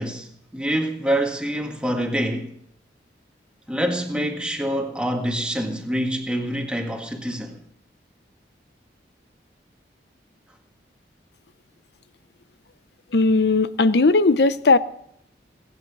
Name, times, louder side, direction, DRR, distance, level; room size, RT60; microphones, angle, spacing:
voice 1, 0.0-2.5 3.7-7.6, equal, 5° right, 1.7 m, -26 dB
voice 2, 13.1-14.8, left 3 dB, 70° left, 0.7 m, -17 dB
21.0 x 8.8 x 6.1 m
head